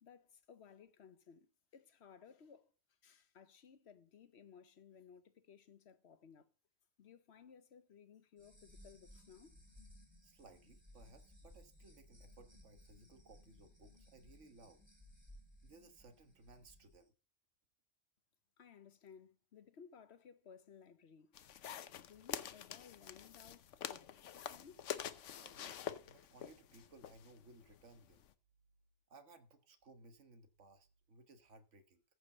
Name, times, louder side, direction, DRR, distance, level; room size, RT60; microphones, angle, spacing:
voice 1, 0.0-6.5 7.0-9.6 18.6-21.4 21.9-25.1, left 7 dB, 65° left, 1.2 m, -60 dB
sound 1, 8.4-17.0, left 1 dB, 20° right, 2.9 m, -61 dB
voice 2, 10.2-14.8 15.6-17.1 25.4-28.3 29.1-32.0, right 2 dB, 85° right, 1.6 m, -61 dB
sound 2, 21.3-28.3, left 10 dB, 90° left, 1.1 m, -47 dB
14.5 x 5.2 x 6.6 m
omnidirectional pair, 1.2 m